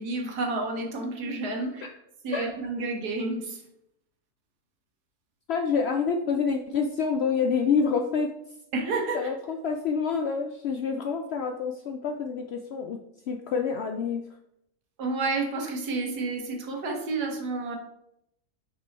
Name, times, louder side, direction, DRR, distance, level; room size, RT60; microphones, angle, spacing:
voice 1, 0.0-1.8 2.2-3.6 8.7-9.3 15.0-17.8, right 3 dB, 80° right, 2 dB, 1.7 m, -30 dB
voice 2, 5.5-8.3 9.1-13.0 13.3-14.2, left 5 dB, 90° left, 4 dB, 0.5 m, -27 dB
5.5 x 5.0 x 4.1 m, 0.79 s
omnidirectional pair, 1.7 m